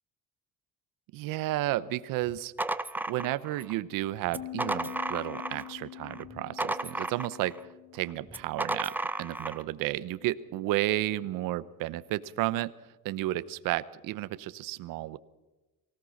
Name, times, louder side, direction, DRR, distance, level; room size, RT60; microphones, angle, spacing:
voice 1, 1.1-2.5 3.1-7.5 7.9-12.7 13.0-15.2, right 15 dB, 85° right, 16 dB, 0.9 m, -32 dB
sound 1, 2.6-3.7 4.3-5.7 6.1-7.6 8.3-9.6, right 2 dB, 5° right, 0.6 m, -34 dB
sound 2, 4.3-9.5, left 15 dB, 60° left, 0.7 m, -45 dB
23.5 x 17.0 x 6.5 m, 1.1 s
cardioid pair, 140°, 32 cm